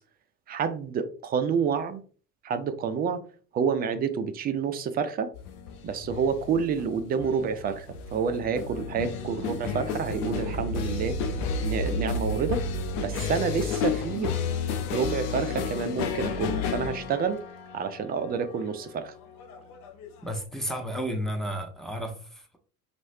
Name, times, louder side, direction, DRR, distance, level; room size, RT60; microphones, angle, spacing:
voice 1, 0.5-2.0 2.4-3.2 3.5-5.3 5.8-11.2 11.6-12.6 13.0-14.3 14.9-17.4 17.7-19.1, right 6 dB, 20° right, 0.3 m, -28 dB
sound 1, 5.3-20.4, left 7 dB, 65° left, 0.8 m, -33 dB
sound 2, 7.5-15.0, right 10 dB, 50° right, 0.7 m, -38 dB
voice 2, 20.2-22.4, equal, ahead, 0.8 m, -32 dB
5.8 x 3.1 x 2.6 m
figure-of-eight pair, 65°, 49 cm